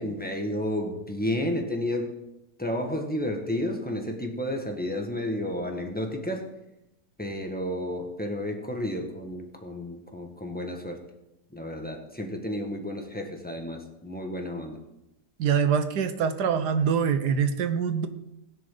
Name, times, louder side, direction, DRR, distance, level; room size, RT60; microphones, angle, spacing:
voice 1, 0.0-2.1 2.6-6.5 7.2-11.0 11.5-14.8, left 1 dB, 5° left, 2 dB, 1.5 m, -31 dB
voice 2, 15.4-18.1, right 7 dB, 75° right, 10 dB, 1.5 m, -24 dB
17.0 x 10.5 x 3.9 m, 0.89 s
omnidirectional pair, 1.8 m